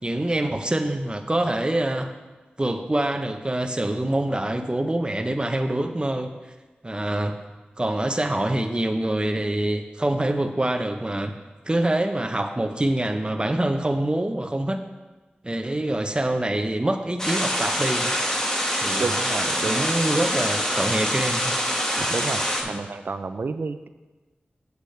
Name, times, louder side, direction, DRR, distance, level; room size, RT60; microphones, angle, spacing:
voice 1, 0.0-2.1 2.6-6.3 6.8-7.4 7.8-11.3 11.7-14.8 15.4-18.1 18.8-19.1 19.7-21.5 22.6-22.8, right 1 dB, 25° right, 6 dB, 0.8 m, -25 dB
sound 1, 17.2-22.6, equal, 15° left, 1.4 m, -25 dB
voice 2, 19.0-19.9 22.0-23.9, right 4 dB, 70° right, 10 dB, 0.5 m, -30 dB
8.1 x 8.1 x 3.3 m, 1.2 s
cardioid pair, 40°, 4 cm